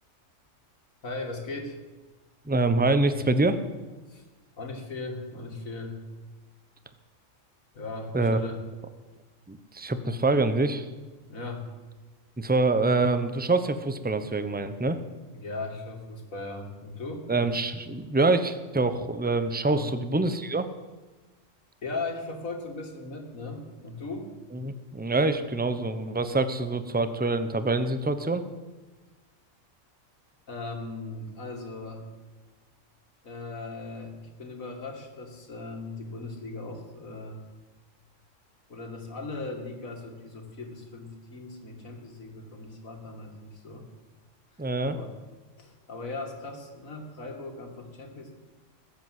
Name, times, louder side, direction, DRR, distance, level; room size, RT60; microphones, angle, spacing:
voice 1, 1.0-1.8 4.1-4.2 4.6-6.0 7.7-8.6 11.3-11.7 15.3-17.3 19.6-19.9 21.8-24.3 30.5-32.1 33.2-37.4 38.7-43.9 44.8-45.1 45.6-48.4, left 3 dB, 85° left, 3 dB, 2.7 m, -38 dB
voice 2, 2.5-3.6 8.1-8.4 9.5-10.9 12.4-15.0 17.3-20.7 24.5-28.4 44.6-45.0, right 2 dB, 10° right, 11 dB, 0.7 m, -25 dB
20.5 x 8.3 x 7.7 m, 1.2 s
omnidirectional pair, 1.4 m